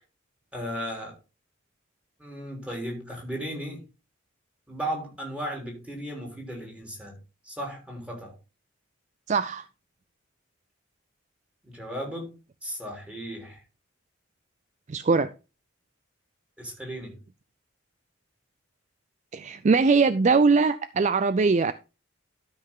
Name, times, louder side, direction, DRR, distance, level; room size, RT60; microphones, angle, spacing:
voice 1, 0.5-1.1 2.2-3.8 4.7-7.2 7.4-8.3 11.6-13.6 16.6-17.2, equal, 5° right, 3.4 m, -35 dB
voice 2, 9.3-9.7 14.9-15.3 19.3-21.7, right 4 dB, 35° right, 0.4 m, -21 dB
12.5 x 5.6 x 3.7 m
head